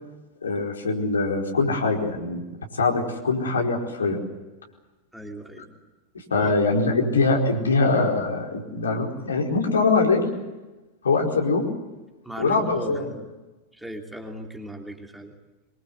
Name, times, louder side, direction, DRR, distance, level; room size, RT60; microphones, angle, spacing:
voice 1, 0.4-2.4 2.7-4.2 6.3-10.3 11.0-11.7 12.4-13.1, left 3 dB, 70° left, 0 dB, 4.6 m, -23 dB
voice 2, 5.1-5.6 6.3-6.5 12.2-13.3 13.8-15.3, right 1 dB, 5° right, 2 dB, 3.0 m, -37 dB
24.5 x 23.0 x 8.2 m, 1.1 s
figure-of-eight pair, 90°, 0 cm